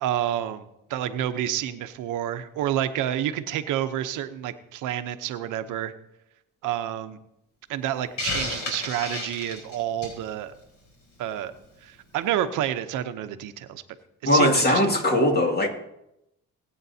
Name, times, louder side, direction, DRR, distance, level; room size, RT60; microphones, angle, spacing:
voice 1, 0.0-5.9 6.6-7.2 7.7-10.5 11.2-11.5 11.8-13.8 14.2-14.9, right 11 dB, 90° right, 0.8 m, -29 dB
Hiss, 8.2-10.2, left 2 dB, 65° left, 4.5 m, -31 dB
voice 2, 14.3-15.7, left 1 dB, 35° left, 2.1 m, -20 dB
20.5 x 8.7 x 2.8 m
cardioid pair, 90°, 30 cm